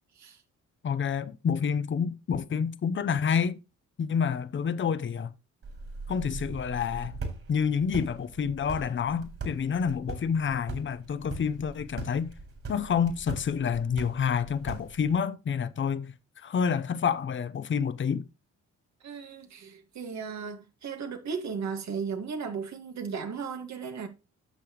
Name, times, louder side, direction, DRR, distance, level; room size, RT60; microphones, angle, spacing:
voice 1, 0.8-3.6 4.0-5.3 6.1-7.2 7.5-12.3 12.7-18.3, left 7 dB, 40° left, 0.8 m, -28 dB
sound 1, 5.6-15.2, right 3 dB, 50° right, 4.2 m, -41 dB
voice 2, 19.0-24.1, right 5 dB, 65° right, 2.1 m, -36 dB
10.0 x 6.8 x 3.1 m
cardioid pair, 90°, 30 cm